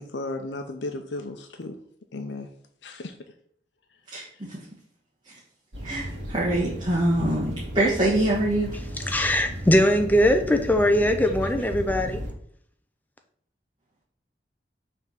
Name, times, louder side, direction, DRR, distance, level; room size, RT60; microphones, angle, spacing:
voice 1, 0.0-1.8 2.1-2.5 2.8-3.1, left 2 dB, 80° left, 0.6 m, -34 dB
voice 2, 4.1-4.6 5.2-5.4 5.8-8.7 9.0-9.1, right 1 dB, 25° right, 1.4 m, -25 dB
sound 1, 5.7-12.3, equal, 85° right, 1.7 m, -35 dB
voice 3, 9.1-12.2, left 1 dB, 10° left, 0.6 m, -21 dB
5.9 x 3.5 x 5.8 m
head